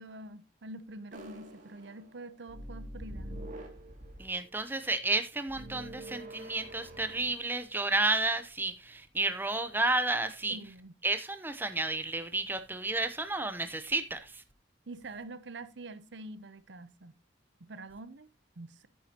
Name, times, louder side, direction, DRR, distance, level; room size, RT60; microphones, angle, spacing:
voice 1, 0.0-3.4 10.5-10.9 14.9-17.1 17.6-18.3 18.6-18.9, right 2 dB, 70° right, 0.8 m, -46 dB
sound 1, 1.1-2.2 2.5-4.4 5.5-7.5, right 1 dB, 45° right, 2.5 m, -45 dB
voice 2, 4.2-10.6 11.0-14.4, right 2 dB, 10° right, 0.7 m, -31 dB
9.6 x 9.3 x 2.9 m
head